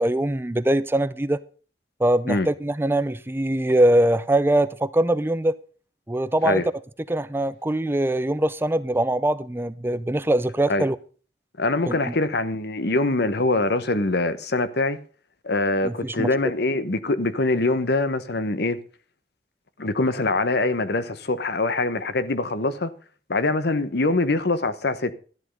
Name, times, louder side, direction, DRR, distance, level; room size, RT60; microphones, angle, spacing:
voice 1, 0.0-1.4 2.0-5.6 6.1-6.6 7.1-11.0 11.9-12.1 15.8-16.3, right 1 dB, 15° right, 0.5 m, -22 dB
voice 2, 11.6-15.0 15.4-18.8 19.8-22.9 23.3-25.1, left 2 dB, 60° left, 1.1 m, -23 dB
13.5 x 10.5 x 5.4 m
head